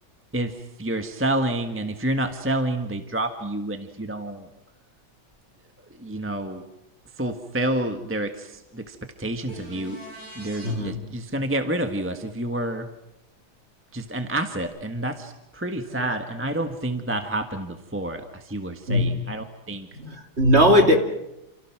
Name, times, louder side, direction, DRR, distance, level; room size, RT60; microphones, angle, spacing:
voice 1, 0.3-4.5 5.9-6.6 7.1-10.0 10.3-12.9 13.9-20.0, right 1 dB, 5° right, 6 dB, 1.3 m, -29 dB
sound 1, 9.5-10.7 14.6-14.7, right 1 dB, 60° right, 6.7 m, -41 dB
voice 2, 10.6-11.0 15.9-16.0 18.9-19.3 19.9-21.0, equal, 30° right, 4 dB, 2.8 m, -19 dB
28.5 x 28.5 x 6.1 m, 0.89 s
omnidirectional pair, 2.2 m